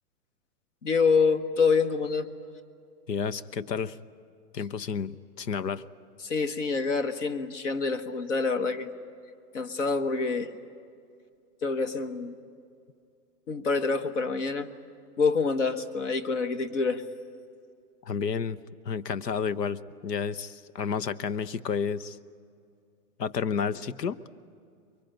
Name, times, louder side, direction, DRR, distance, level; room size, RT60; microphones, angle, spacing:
voice 1, 0.8-2.3 6.2-8.9 9.5-10.5 11.6-12.4 13.5-14.7 15.2-17.0, left 4 dB, 45° left, 9 dB, 1.3 m, -26 dB
voice 2, 3.1-4.0 4.5-5.8 18.0-18.6 18.8-22.2 23.2-24.2, left 6 dB, 80° left, 15 dB, 1.0 m, -31 dB
23.5 x 22.0 x 9.0 m, 2.3 s
hypercardioid pair, 175°, 48 cm